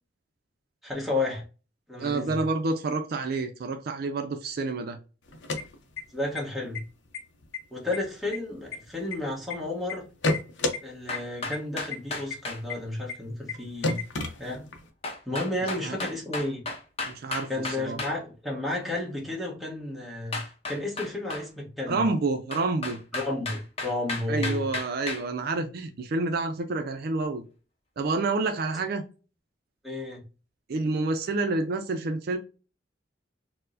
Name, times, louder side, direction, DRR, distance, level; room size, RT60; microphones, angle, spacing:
voice 1, 0.8-1.4 1.9-2.4 6.1-6.8 7.7-10.1 10.8-14.0 14.4-14.7 15.3-16.6 17.5-20.4 20.7-22.0 23.1-24.7 29.8-30.2, left 2 dB, ahead, 1.0 m, -32 dB
voice 2, 2.0-5.0 15.8-16.0 17.1-18.0 21.9-23.0 24.3-27.4 28.0-29.0 30.7-32.4, right 3 dB, 55° right, 0.4 m, -28 dB
sound 1, 5.3-6.4 6.7-6.8 7.1-7.6 7.9-9.5 9.9-10.8 11.1-11.2 11.5-11.6 11.9-12.0 12.3-12.4 12.7-12.8 13.1-13.2 13.5-13.6 13.8-14.9, left 2 dB, 80° left, 0.6 m, -30 dB
sound 2, 11.1-12.6 15.0-18.2 20.3-21.5 22.5-25.2, left 3 dB, 35° left, 0.7 m, -34 dB
4.4 x 2.1 x 2.5 m
head